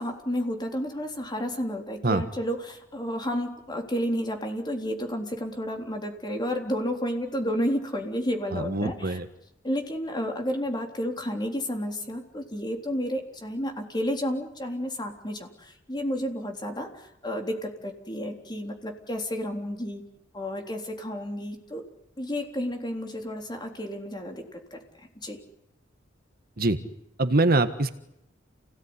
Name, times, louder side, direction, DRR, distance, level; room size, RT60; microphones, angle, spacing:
voice 1, 0.0-9.2 9.6-20.0 20.3-21.9 22.2-25.4, equal, 25° left, 3 dB, 3.7 m, -31 dB
voice 2, 8.5-9.2 26.6-26.8 27.2-27.9, right 2 dB, 50° right, 10 dB, 1.5 m, -23 dB
29.0 x 18.0 x 9.8 m, 0.83 s
head